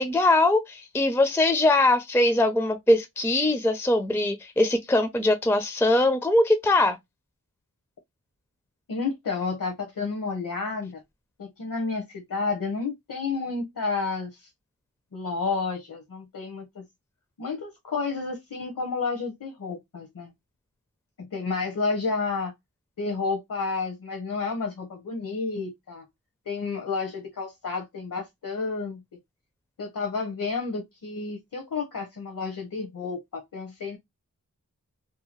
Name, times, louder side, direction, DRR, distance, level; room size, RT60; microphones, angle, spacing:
voice 1, 0.0-7.0, left 2 dB, 5° left, 0.4 m, -22 dB
voice 2, 8.9-11.0 11.4-14.5 15.1-16.8 17.4-20.3 21.2-22.5 23.0-26.0 26.5-29.0 29.8-34.0, left 4 dB, 70° left, 0.8 m, -31 dB
2.7 x 2.2 x 2.8 m
wide cardioid pair, 80°, 34 cm